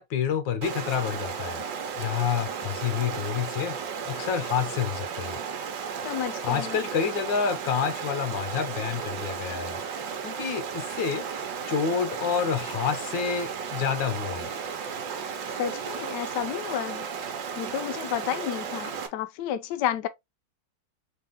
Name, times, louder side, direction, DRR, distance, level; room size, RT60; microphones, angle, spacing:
voice 1, 0.0-1.6 2.0-5.4 6.4-9.8 10.2-11.3 11.7-14.5, left 7 dB, 65° left, 1.4 m, -28 dB
Stream, 0.6-19.1, right 6 dB, 65° right, 1.4 m, -34 dB
voice 2, 6.0-6.8 15.6-17.1 17.6-20.1, left 10 dB, 85° left, 0.9 m, -31 dB
4.2 x 3.3 x 3.6 m
omnidirectional pair, 2.4 m